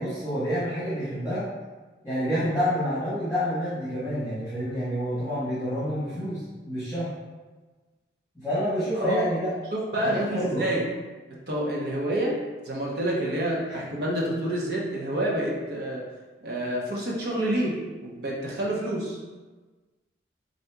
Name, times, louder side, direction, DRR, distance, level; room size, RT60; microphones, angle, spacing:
voice 1, 0.0-1.4 2.0-7.1 8.3-9.5 10.0-10.6 13.7-13.8, equal, 5° right, -13 dB, 1.4 m, -28 dB
voice 2, 9.9-10.8 11.5-12.4 12.7-16.0 16.4-19.2, right 1 dB, 65° right, -4 dB, 1.1 m, -28 dB
4.2 x 2.6 x 4.6 m, 1.3 s
head